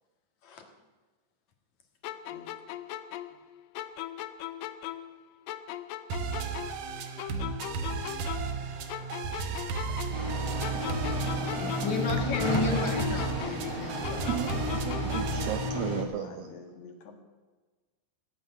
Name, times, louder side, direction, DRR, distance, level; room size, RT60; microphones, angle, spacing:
sound 1, 2.0-5.2 5.5-8.6 8.9-12.1 12.3-15.5, left 13 dB, 90° left, 1.9 m, -39 dB
sound 2, 6.1-15.7, right 5 dB, 65° right, 2.3 m, -34 dB
voice 1, 9.9-11.0 16.0-17.2, left 5 dB, 70° left, 3 dB, 3.6 m, -49 dB
sound 3, 10.1-16.0, left 2 dB, 10° right, 1.8 m, -33 dB
voice 2, 11.6-14.3, left 3 dB, 55° left, 4 dB, 2.5 m, -33 dB
voice 3, 14.3-16.5, right 12 dB, 85° right, 10 dB, 2.0 m, -34 dB
18.5 x 8.5 x 9.0 m, 1.3 s
omnidirectional pair, 4.9 m